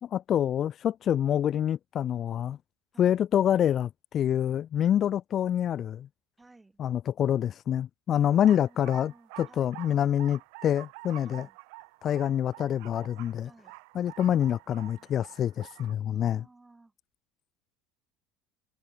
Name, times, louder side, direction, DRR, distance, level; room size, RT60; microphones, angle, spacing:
voice 1, 0.0-2.6 3.0-6.1 6.8-11.5 12.0-13.5 13.9-16.4, left 10 dB, 40° left, 0.4 m, -26 dB
voice 2, 2.9-3.3 6.4-6.8 8.5-9.8 11.2-11.6 13.4-13.8 16.1-16.9, right 2 dB, 15° right, 6.9 m, -57 dB
sound 1, 8.3-15.9, right 38 dB, 65° right, 1.2 m, -48 dB
figure-of-eight pair, 65°, 0 cm